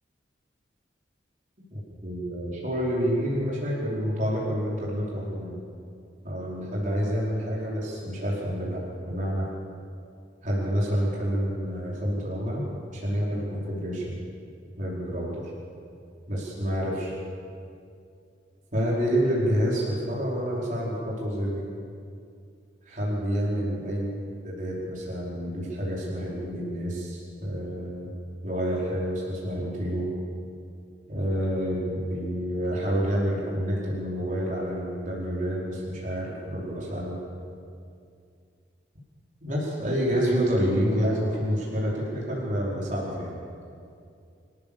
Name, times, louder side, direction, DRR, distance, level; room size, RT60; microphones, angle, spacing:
voice 1, 1.7-5.6 6.2-9.5 10.4-14.2 14.8-15.4 16.3-17.1 18.7-21.6 22.8-24.1 24.4-28.1 28.4-30.2 31.1-37.2 39.4-43.3, equal, 45° right, -6 dB, 4.9 m, -28 dB
26.5 x 14.5 x 7.1 m, 2.4 s
head